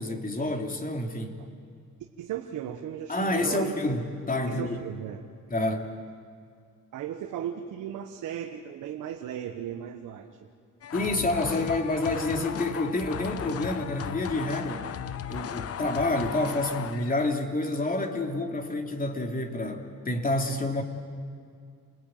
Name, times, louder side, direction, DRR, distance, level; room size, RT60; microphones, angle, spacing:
voice 1, 0.0-1.4 3.1-4.8 5.5-5.8 10.9-14.9 15.3-20.8, left 2 dB, 30° left, 3 dB, 3.1 m, -28 dB
voice 2, 2.2-3.7 4.4-5.3 5.6-5.8 6.9-10.3, right 10 dB, 90° right, 3 dB, 1.4 m, -36 dB
sound 1, 10.8-17.3, left 9 dB, 50° left, 0.9 m, -36 dB
28.5 x 20.5 x 9.2 m, 2.3 s
cardioid pair, 90°, 30 cm